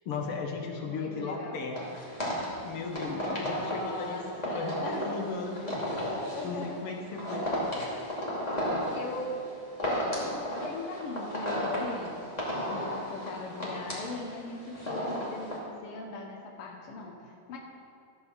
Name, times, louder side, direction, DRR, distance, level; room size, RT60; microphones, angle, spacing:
voice 1, 0.0-1.8 2.6-4.2 4.5-6.0 6.4-7.9, left 4 dB, 60° left, 2 dB, 1.5 m, -36 dB
voice 2, 0.8-1.6 3.1-5.1 6.3-6.8 8.8-9.5 9.8-17.6, left 3 dB, 80° left, 1 dB, 1.2 m, -40 dB
sound 1, 1.7-15.6, equal, 15° left, 1.8 m, -33 dB
13.0 x 7.0 x 7.0 m, 2.5 s
omnidirectional pair, 4.0 m